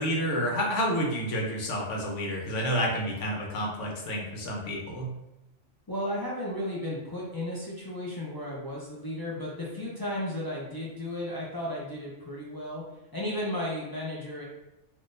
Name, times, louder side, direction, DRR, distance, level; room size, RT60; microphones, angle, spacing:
voice 1, 0.0-5.1, equal, 80° left, -1 dB, 1.1 m, -29 dB
voice 2, 5.9-12.8 13.1-14.4, left 1 dB, 35° left, -5 dB, 0.3 m, -34 dB
3.7 x 2.5 x 2.5 m, 0.93 s
omnidirectional pair, 1.2 m